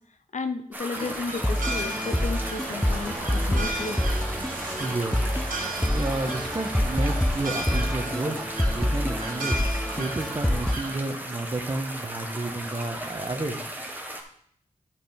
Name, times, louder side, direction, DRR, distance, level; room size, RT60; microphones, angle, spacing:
voice 1, 0.3-4.0, left 4 dB, 55° left, 8 dB, 0.8 m, -33 dB
sound 1, 0.7-14.2, right 1 dB, 15° right, 1.6 m, -37 dB
sound 2, 0.9-11.0, right 2 dB, 80° right, 1.6 m, -35 dB
sound 3, 1.4-10.8, left 1 dB, 5° left, 0.5 m, -27 dB
voice 2, 4.8-5.3 5.9-8.3 8.7-9.6 10.0-13.6, right 2 dB, 30° right, 5 dB, 1.3 m, -31 dB
10.5 x 5.3 x 4.5 m, 0.66 s
cardioid pair, 45°, 14 cm